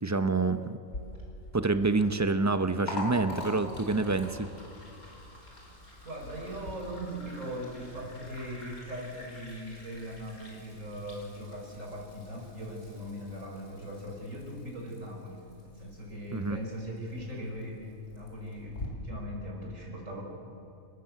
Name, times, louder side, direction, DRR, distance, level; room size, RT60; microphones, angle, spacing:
voice 1, 0.0-0.8 1.5-4.5 16.3-16.6, right 3 dB, 25° right, 10 dB, 0.3 m, -27 dB
Liquid, 0.8-18.9, left 2 dB, 80° left, 5.0 m, -45 dB
voice 2, 6.0-20.2, equal, 60° right, -1 dB, 5.5 m, -40 dB
29.5 x 13.5 x 7.5 m, 2.9 s
omnidirectional pair, 1.5 m